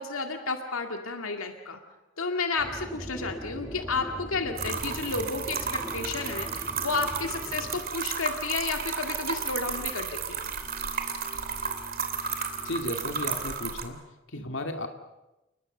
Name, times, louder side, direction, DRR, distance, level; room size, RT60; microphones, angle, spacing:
voice 1, 0.0-1.8 2.2-10.4 14.4-14.5, left 4 dB, 90° left, 5 dB, 2.1 m, -32 dB
sound 1, 2.6-7.8, equal, 5° right, 2.1 m, -40 dB
sound 2, 3.5-13.5, right 1 dB, 30° left, 7.0 m, -48 dB
sound 3, 4.6-13.8, right 6 dB, 45° right, 2.9 m, -33 dB
voice 2, 12.6-14.0 14.3-14.9, left 1 dB, 65° left, 5 dB, 2.5 m, -34 dB
30.0 x 21.0 x 6.8 m, 0.98 s
head